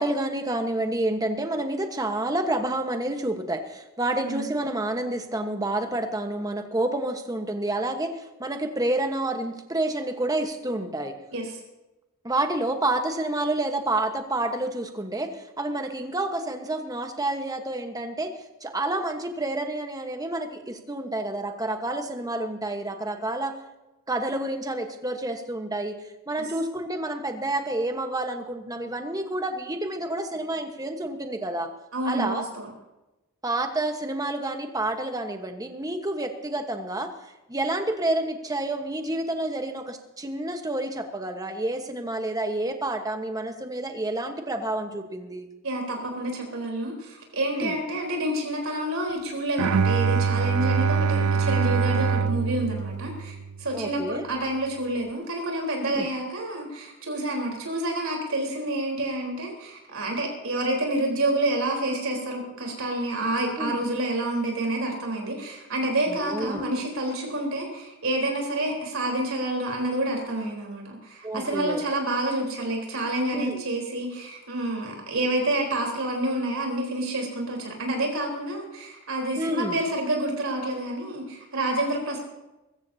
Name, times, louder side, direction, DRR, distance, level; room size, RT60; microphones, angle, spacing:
voice 1, 0.0-8.1 8.4-11.2 12.2-18.3 18.6-23.6 24.1-26.0 26.3-31.7 32.0-32.4 33.4-37.1 37.5-45.5 47.5-47.7 53.7-54.3 55.9-56.1 63.6-63.8 66.1-66.6 71.2-71.8 73.3-73.6 79.4-79.8, right 1 dB, 15° right, 6 dB, 1.2 m, -29 dB
voice 2, 31.9-32.7 45.6-82.2, right 1 dB, 70° right, 0 dB, 4.0 m, -28 dB
Bowed string instrument, 49.6-53.7, right 5 dB, 85° right, 0.4 m, -24 dB
22.5 x 14.5 x 2.8 m, 1.0 s
head